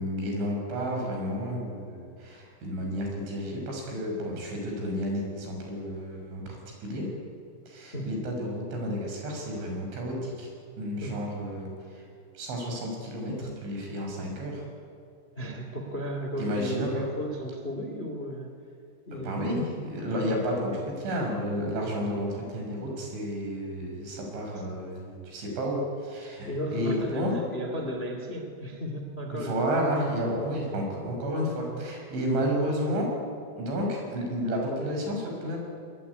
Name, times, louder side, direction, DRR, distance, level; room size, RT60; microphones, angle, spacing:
voice 1, 0.0-7.1 7.7-10.5 10.8-12.1 12.3-14.6 16.4-17.1 19.1-27.3 29.3-33.1 33.6-35.6, equal, 80° right, 1 dB, 8.3 m, -31 dB
voice 2, 15.3-18.5 19.0-19.7 20.1-20.4 20.7-20.8 21.8-22.1 26.4-29.9, equal, 20° left, 4 dB, 1.8 m, -35 dB
23.0 x 22.0 x 9.7 m, 2.4 s
omnidirectional pair, 5.3 m